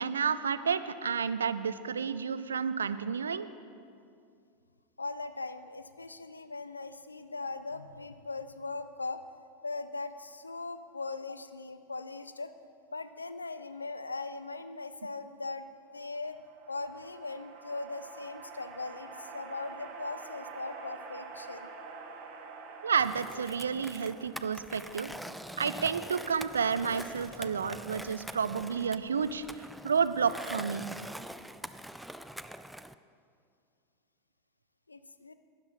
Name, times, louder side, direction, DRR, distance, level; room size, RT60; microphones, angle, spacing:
voice 1, 0.0-3.5 22.8-25.1 25.6-29.4 29.8-30.9, right 6 dB, 75° right, 14 dB, 0.4 m, -30 dB
voice 2, 5.0-9.2 9.6-12.5 12.9-15.7 15.9-16.4 16.7-21.7 34.9-35.3, left 3 dB, 85° left, 12 dB, 0.4 m, -39 dB
sound 1, 16.1-25.7, right 4 dB, 45° right, 1.3 m, -47 dB
Skateboard, 23.0-32.9, right 1 dB, 5° right, 0.3 m, -44 dB
12.5 x 9.7 x 4.1 m, 2.4 s
figure-of-eight pair, 85°, 0 cm